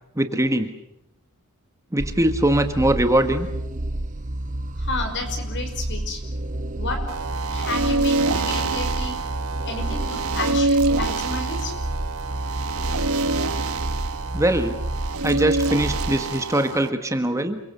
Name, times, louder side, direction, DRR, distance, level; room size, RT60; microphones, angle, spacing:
voice 1, 0.2-0.7 1.9-3.5 14.3-14.8 15.2-17.6, right 1 dB, 15° right, 8 dB, 1.5 m, -21 dB
sound 1, 2.0-16.2, right 1 dB, 35° right, 1.0 m, -30 dB
voice 2, 4.8-6.2 6.8-7.0 7.5-9.1 9.6-11.7, left 2 dB, 55° left, 6 dB, 6.0 m, -31 dB
sound 2, 7.1-16.9, right 3 dB, 75° right, 1.3 m, -26 dB
29.0 x 23.5 x 6.9 m, 0.84 s
head